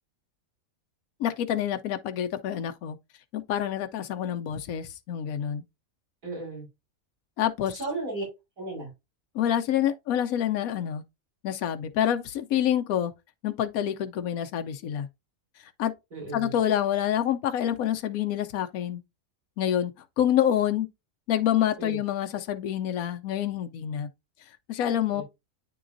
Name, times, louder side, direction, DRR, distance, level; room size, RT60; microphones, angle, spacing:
voice 1, 1.2-3.0 3.3-5.6 7.4-7.8 9.3-11.0 11.4-13.1 13.4-15.1 15.8-15.9 16.3-19.0 19.6-20.9 21.3-24.1 24.7-25.2, left 10 dB, 85° left, 1.1 m, -27 dB
voice 2, 6.2-6.6 7.8-8.2 8.6-8.9 16.1-16.5 21.8-22.0 25.1-25.2, right 2 dB, 75° right, 5.0 m, -34 dB
10.0 x 3.8 x 2.5 m
omnidirectional pair, 1.5 m